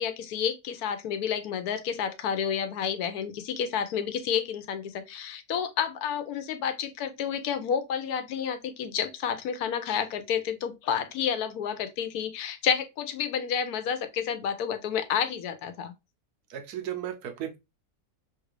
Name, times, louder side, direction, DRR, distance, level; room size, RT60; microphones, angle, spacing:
voice 1, 0.0-15.9, left 8 dB, 80° left, 1.1 m, -30 dB
voice 2, 16.5-17.6, right 10 dB, 85° right, 1.2 m, -35 dB
3.1 x 2.4 x 3.1 m
omnidirectional pair, 1.6 m